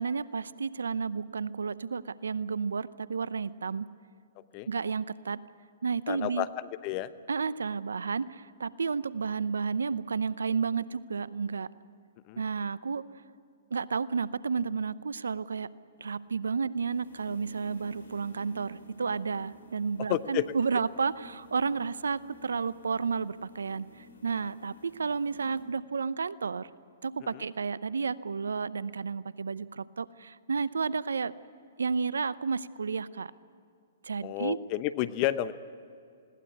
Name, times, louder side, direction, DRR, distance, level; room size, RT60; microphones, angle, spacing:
voice 1, 0.0-3.9 4.7-5.4 5.8-6.5 7.3-11.7 12.4-13.0 13.7-15.7 16.0-23.9 24.2-26.7 27.0-31.3 31.8-33.3 34.1-34.6, right 5 dB, 80° right, 18 dB, 0.7 m, -31 dB
voice 2, 6.1-6.5 6.8-7.1 12.3-12.4 20.1-20.4 34.2-35.5, left 14 dB, 40° left, 14 dB, 0.9 m, -30 dB
PC-fan, 16.0-25.6, equal, 75° left, 6.3 m, -53 dB
21.0 x 17.5 x 8.4 m, 2.4 s
hypercardioid pair, 125°, 0 cm